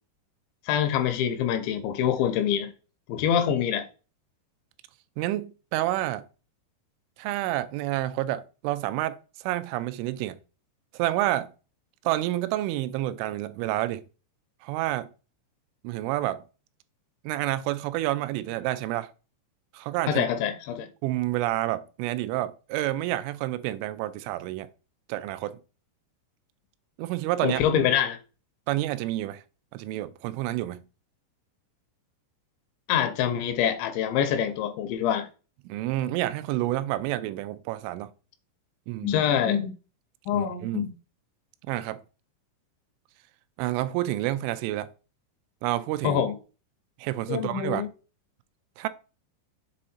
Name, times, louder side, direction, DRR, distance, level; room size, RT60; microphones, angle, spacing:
voice 1, 0.7-2.7 3.1-3.9 20.1-20.9 27.4-28.2 32.9-35.3 39.0-39.7 40.3-40.9 46.0-46.3 47.3-47.9, left 9 dB, 80° left, 2.8 m, -25 dB
voice 2, 5.2-6.2 7.2-10.4 10.9-11.5 12.0-14.0 14.6-15.1 15.8-16.4 17.2-19.1 19.7-20.3 21.0-24.7 25.1-25.6 27.0-27.6 28.7-29.4 29.7-30.8 35.7-38.1 38.9-39.1 40.3-40.9 41.6-42.0 43.6-44.9 45.6-46.2 47.0-47.8 48.8-48.9, right 15 dB, 90° right, 3.0 m, -29 dB
7.3 x 3.8 x 4.2 m
omnidirectional pair, 5.5 m